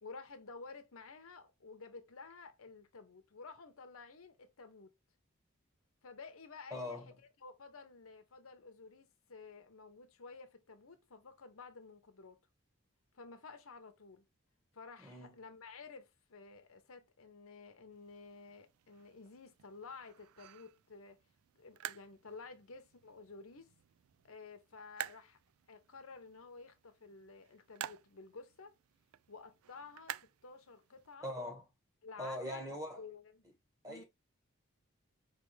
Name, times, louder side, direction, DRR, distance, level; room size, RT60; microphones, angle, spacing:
voice 1, 0.0-4.9 6.0-7.0 7.4-12.4 13.1-14.3 14.7-21.2 21.6-23.7 24.2-25.4 25.7-28.7 29.3-31.3 32.0-33.5 33.9-34.0, left 4 dB, 80° left, 0.9 m, -52 dB
voice 2, 6.7-7.1 15.0-15.3 31.2-31.6 32.2-33.0 33.8-34.0, left 1 dB, 15° right, 1.4 m, -41 dB
sound 1, 17.9-31.1, right 12 dB, 80° right, 0.3 m, -51 dB
4.8 x 3.4 x 3.2 m
head